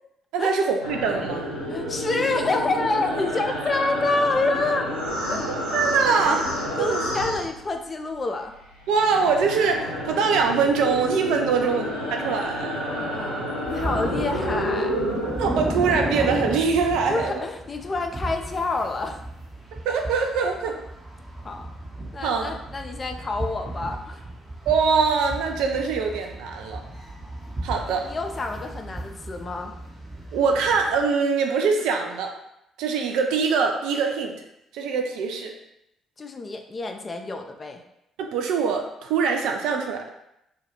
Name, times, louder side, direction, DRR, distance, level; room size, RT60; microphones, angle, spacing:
voice 1, 0.3-1.5 5.7-6.5 6.8-7.0 8.9-12.8 15.4-17.4 19.9-20.8 22.2-22.5 24.7-26.8 27.6-28.1 30.3-32.3 32.8-34.3 34.7-35.5 38.2-40.1, right 5 dB, 60° right, 3 dB, 0.3 m, -23 dB
sound 1, 0.8-8.1 8.4-16.4, equal, 90° left, 0.5 m, -30 dB
voice 2, 1.7-4.9 5.3-5.4 6.8-8.5 11.5-11.7 12.8-14.9 17.1-19.2 21.4-21.6 22.1-24.2 28.0-29.7 36.2-37.8, left 3 dB, 30° left, 5 dB, 0.3 m, -28 dB
sound 2, 13.6-31.0, right 1 dB, 30° right, 0.8 m, -35 dB
2.3 x 2.2 x 2.9 m, 0.83 s
figure-of-eight pair, 45°, 0 cm